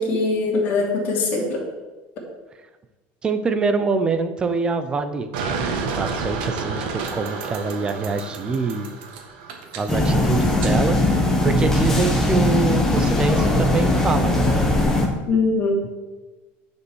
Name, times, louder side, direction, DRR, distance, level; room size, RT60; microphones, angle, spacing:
voice 1, 0.0-1.6 15.3-15.8, left 3 dB, 40° left, -2 dB, 2.8 m, -21 dB
voice 2, 3.2-5.3 6.0-8.9 9.7-11.0 11.4-14.5, right 4 dB, 20° right, 10 dB, 0.7 m, -24 dB
sound 1, 5.3-10.7, right 4 dB, 85° right, 1.6 m, -30 dB
sound 2, 9.9-15.1, left 1 dB, 10° left, 1.3 m, -19 dB
10.0 x 5.3 x 6.4 m, 1.2 s
cardioid pair, 170°, 5 cm